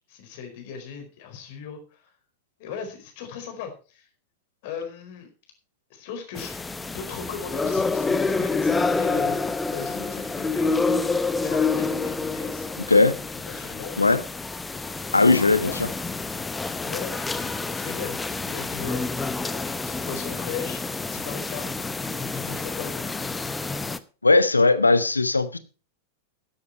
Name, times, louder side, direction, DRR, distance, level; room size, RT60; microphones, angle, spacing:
voice 1, 0.1-2.1 2.6-4.1 4.6-5.3 5.9-6.6 6.9-9.4 9.7-10.8 11.4-12.7 13.4-14.0 15.2-15.8 16.8-19.1 19.5-20.8 21.1-21.7 22.4-23.0, left 6 dB, 50° left, 4.7 m, -37 dB
sound 1, 6.3-24.0, left 4 dB, 10° left, 0.9 m, -28 dB
voice 2, 15.1-15.9 24.2-25.6, left 3 dB, 80° left, 1.1 m, -18 dB
13.5 x 10.5 x 4.5 m
figure-of-eight pair, 90°, 0 cm